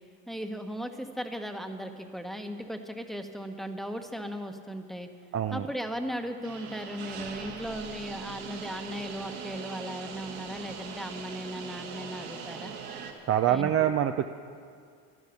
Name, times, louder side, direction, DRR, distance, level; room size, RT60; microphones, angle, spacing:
voice 1, 0.3-5.1 5.5-12.7 13.5-13.7, equal, ahead, 5 dB, 1.1 m, -37 dB
voice 2, 5.3-5.7 13.2-14.3, right 10 dB, 35° right, 8 dB, 0.5 m, -25 dB
sound 1, 6.4-13.1, right 6 dB, 60° right, 1.8 m, -41 dB
12.0 x 11.5 x 6.8 m, 2.1 s
supercardioid pair, 85°, 41 cm